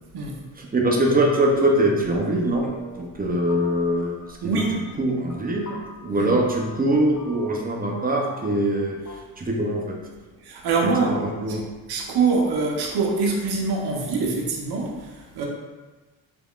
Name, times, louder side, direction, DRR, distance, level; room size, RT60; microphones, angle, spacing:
voice 1, 0.6-4.6 5.0-10.0 11.1-11.6, right 1 dB, 20° right, 0 dB, 0.7 m, -23 dB
sound 1, 2.5-3.2 3.5-4.0 4.2-5.9 6.4-6.9 7.2-7.6 7.9-8.7 9.0-9.2, left 2 dB, 35° left, 0.7 m, -44 dB
voice 2, 4.4-4.8 6.1-6.3 10.4-11.6 11.9-15.5, right 4 dB, 55° right, -1 dB, 0.8 m, -24 dB
3.4 x 3.2 x 2.4 m, 1.2 s
supercardioid pair, 55°, 46 cm